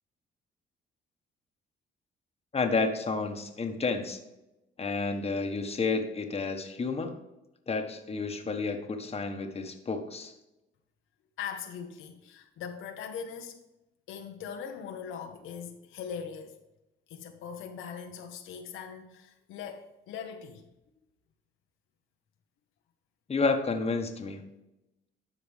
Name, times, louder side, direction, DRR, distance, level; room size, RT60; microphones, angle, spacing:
voice 1, 2.5-4.2 4.8-7.1 7.7-10.3 23.3-24.5, left 4 dB, 30° left, 5 dB, 1.3 m, -30 dB
voice 2, 11.4-13.6 14.1-16.6 17.1-20.6, left 7 dB, 85° left, 4 dB, 1.0 m, -40 dB
12.0 x 4.9 x 3.5 m, 0.94 s
cardioid pair, 90°, 20 cm